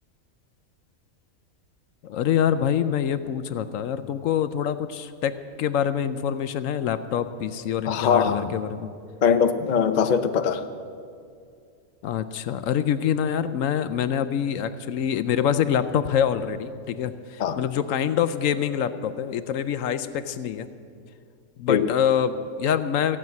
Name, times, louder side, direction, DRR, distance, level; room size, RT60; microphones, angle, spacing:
voice 1, 2.0-8.9 12.0-20.7 21.6-23.2, left 9 dB, 70° left, 12 dB, 0.9 m, -25 dB
voice 2, 7.9-8.5 9.2-10.6 17.4-17.6 21.7-21.8, left 7 dB, 50° left, 9 dB, 0.5 m, -21 dB
15.0 x 7.4 x 9.3 m, 2.3 s
omnidirectional pair, 1.5 m